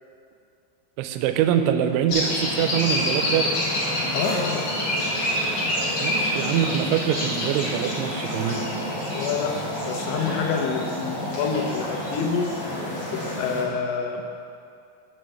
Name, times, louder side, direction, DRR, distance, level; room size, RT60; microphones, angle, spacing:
voice 1, 1.0-3.5 6.0-8.7, right 9 dB, 90° right, 8 dB, 3.0 m, -24 dB
sound 1, 2.1-13.6, left 1 dB, 45° left, 2.1 m, -27 dB
voice 2, 4.1-4.7 9.1-9.6 9.9-12.5 13.1-14.3, left 5 dB, 80° left, 2 dB, 3.1 m, -27 dB
7.2 x 6.8 x 7.7 m, 2.5 s
omnidirectional pair, 5.2 m